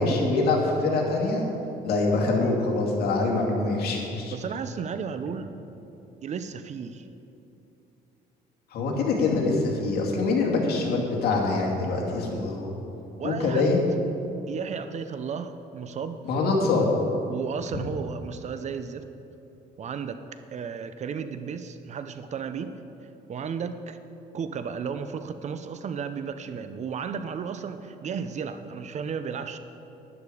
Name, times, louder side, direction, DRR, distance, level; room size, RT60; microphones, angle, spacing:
voice 1, 0.0-1.4 1.8-4.3 8.7-12.7 13.2-13.8 16.3-16.9 17.7-17.8, left 3 dB, 65° left, -1 dB, 2.4 m, -24 dB
voice 2, 4.3-5.5 6.2-7.1 13.2-13.7 14.5-16.2 17.3-19.0 19.8-20.2 20.5-22.7 23.3-24.0 24.3-29.6, right 6 dB, 45° right, 10 dB, 0.6 m, -33 dB
12.0 x 10.5 x 4.9 m, 3.0 s
cardioid pair, 110°, 17 cm